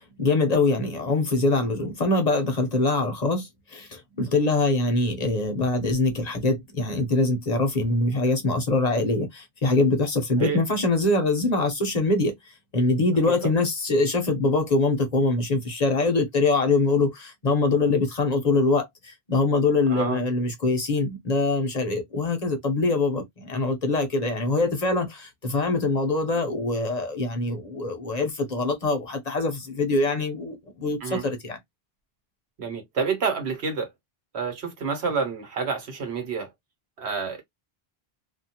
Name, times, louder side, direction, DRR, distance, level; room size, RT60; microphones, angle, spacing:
voice 1, 0.2-12.3 12.7-31.6, left 3 dB, 45° left, 0.8 m, -24 dB
voice 2, 19.9-20.2 31.0-31.3 32.6-33.9 34.3-36.5 37.0-37.4, right 5 dB, 85° right, 1.3 m, -28 dB
2.4 x 2.4 x 2.8 m
omnidirectional pair, 1.1 m